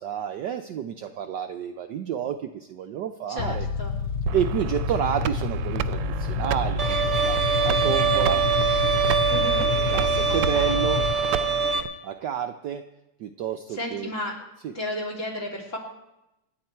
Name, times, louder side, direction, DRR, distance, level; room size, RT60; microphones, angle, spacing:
voice 1, 0.0-3.7 4.3-8.4 9.8-11.1 12.0-12.8 13.2-14.1 14.6-14.7, right 9 dB, 70° right, 7 dB, 1.1 m, -30 dB
voice 2, 3.3-3.9 9.3-9.7 10.3-10.8 13.7-14.3 14.7-15.8, left 1 dB, 35° left, 1 dB, 3.2 m, -33 dB
sound 1, 3.4-11.1, left 5 dB, 85° left, 0.6 m, -29 dB
sound 2, 4.3-11.9, right 10 dB, 90° right, 1.6 m, -32 dB
Bowed string instrument, 6.8-11.8, right 5 dB, 40° right, 1.3 m, -24 dB
27.0 x 9.6 x 4.5 m, 0.91 s
omnidirectional pair, 2.4 m